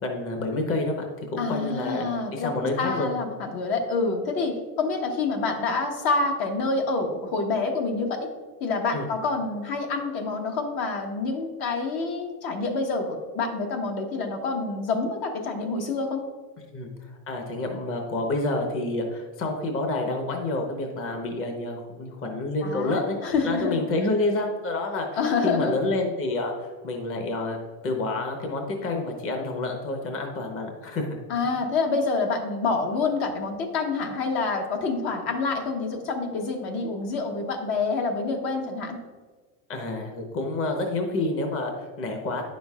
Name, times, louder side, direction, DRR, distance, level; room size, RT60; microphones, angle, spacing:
voice 1, 0.0-1.0 1.3-3.1 8.9-9.1 16.7-23.2 23.4-25.1 25.4-27.6 27.8-31.2 39.7-42.4, left 2 dB, 30° left, 3 dB, 1.0 m, -28 dB
voice 2, 1.4-2.5 2.8-8.2 8.6-16.2 22.6-23.8 25.1-25.7 31.3-39.0, left 3 dB, 55° left, 3 dB, 1.2 m, -27 dB
9.6 x 6.2 x 2.4 m, 1.4 s
supercardioid pair, 130°, 46 cm